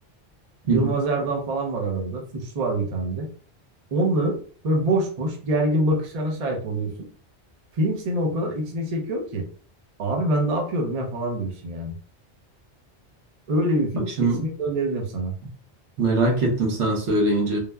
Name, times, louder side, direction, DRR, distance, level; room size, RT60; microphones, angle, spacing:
voice 1, 0.6-3.3 3.9-7.1 7.7-9.5 10.0-11.9 13.5-15.4, right 1 dB, 45° right, 1 dB, 0.6 m, -25 dB
voice 2, 16.0-17.6, right 2 dB, 80° right, 0 dB, 1.1 m, -22 dB
3.2 x 2.1 x 2.2 m, 0.44 s
omnidirectional pair, 1.2 m